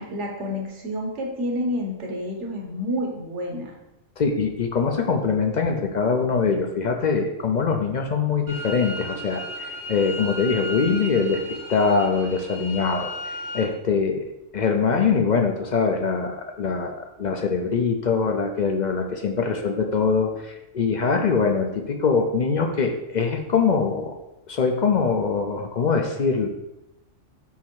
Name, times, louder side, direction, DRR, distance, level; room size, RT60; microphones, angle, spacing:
voice 1, 0.0-3.7, left 1 dB, 70° right, 0 dB, 1.5 m, -29 dB
voice 2, 4.2-14.2 14.5-24.2 24.5-26.5, left 5 dB, 50° left, 4 dB, 0.5 m, -23 dB
sound 1, 8.5-13.6, equal, 90° right, 2.9 m, -35 dB
5.6 x 4.2 x 4.6 m, 0.92 s
omnidirectional pair, 1.3 m